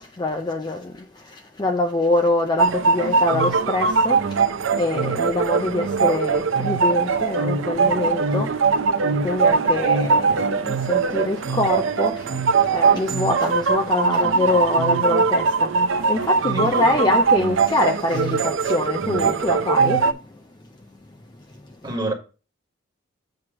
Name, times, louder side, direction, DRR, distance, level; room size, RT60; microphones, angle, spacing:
voice 1, 0.0-4.4 4.7-8.6 9.1-20.4 21.5-21.8, left 2 dB, 20° left, 0.4 m, -25 dB
sound 1, 2.6-20.1, right 4 dB, 70° right, 0.6 m, -21 dB
voice 2, 16.5-17.2 21.8-22.1, right 1 dB, 20° right, 1.5 m, -29 dB
7.7 x 3.1 x 6.1 m
head